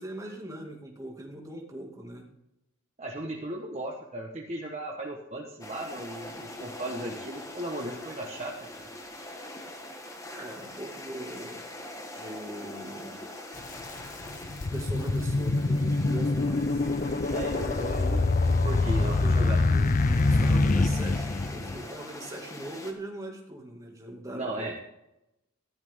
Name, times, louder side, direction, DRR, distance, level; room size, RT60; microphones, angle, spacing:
voice 1, 0.0-2.3 10.3-11.6 12.1-13.2 14.7-18.3 19.0-19.5 20.3-24.7, right 1 dB, 15° right, 1 dB, 2.1 m, -41 dB
voice 2, 3.0-8.9 17.3-18.2 18.4-19.9 24.3-24.8, right 1 dB, 30° right, 0 dB, 1.2 m, -36 dB
sound 1, 5.6-22.9, left 1 dB, 15° left, 1.5 m, -43 dB
sound 2, 13.6-13.7 14.2-21.8, left 3 dB, 40° left, 0.5 m, -25 dB
14.5 x 11.5 x 3.6 m, 0.86 s
head